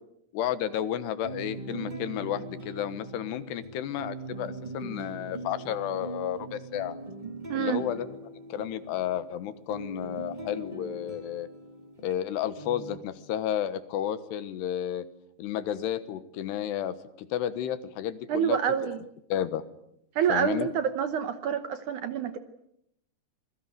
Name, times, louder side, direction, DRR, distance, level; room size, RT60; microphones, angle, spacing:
voice 1, 0.3-7.0 7.6-8.1 8.5-11.5 12.0-15.1 15.4-18.6 19.3-19.6 20.3-20.7, left 10 dB, 90° left, 13 dB, 3.5 m, -32 dB
sound 1, 1.2-12.2 12.6-13.0, right 2 dB, 35° right, 0.7 m, -41 dB
voice 2, 7.5-7.8 18.3-19.0 20.2-22.4, right 8 dB, 70° right, 10 dB, 2.0 m, -27 dB
26.5 x 22.0 x 7.9 m, 0.78 s
omnidirectional pair, 4.7 m